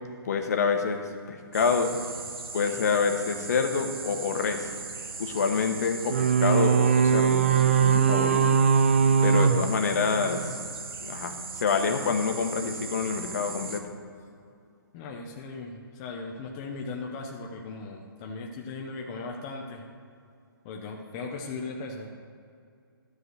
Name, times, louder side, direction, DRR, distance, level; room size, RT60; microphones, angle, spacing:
voice 1, 0.2-1.9 2.5-4.7 5.2-8.5 9.2-10.5 11.0-13.9, left 5 dB, 40° left, 5 dB, 1.1 m, -27 dB
sound 1, 1.5-13.8, right 4 dB, 75° right, 1.3 m, -38 dB
sound 2, 6.1-10.6, right 6 dB, 35° right, 0.3 m, -22 dB
voice 2, 14.9-19.8 20.6-22.1, left 3 dB, 15° left, 0 dB, 0.5 m, -38 dB
12.5 x 4.8 x 7.9 m, 2.4 s
hypercardioid pair, 170°, 12 cm